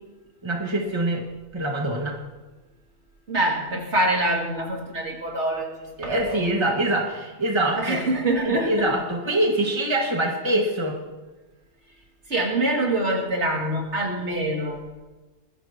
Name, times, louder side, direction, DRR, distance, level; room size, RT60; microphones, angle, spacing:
voice 1, 0.4-1.2 1.5-2.1 6.0-8.0 8.5-11.0, right 1 dB, 25° right, 0 dB, 2.0 m, -24 dB
voice 2, 3.3-6.8 7.8-8.9 12.3-14.8, right 1 dB, 70° right, -1 dB, 3.0 m, -25 dB
20.5 x 15.0 x 3.0 m, 1.2 s
omnidirectional pair, 1.2 m